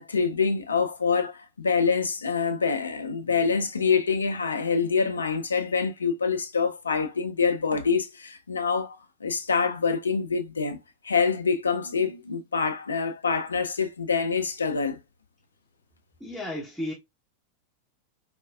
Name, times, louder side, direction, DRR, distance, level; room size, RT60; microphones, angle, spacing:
voice 1, 0.0-10.8 11.0-15.0, left 5 dB, 75° left, 0.4 m, -26 dB
voice 2, 16.2-16.9, left 1 dB, ahead, 0.7 m, -33 dB
4.1 x 2.3 x 2.3 m
figure-of-eight pair, 90°, 0 cm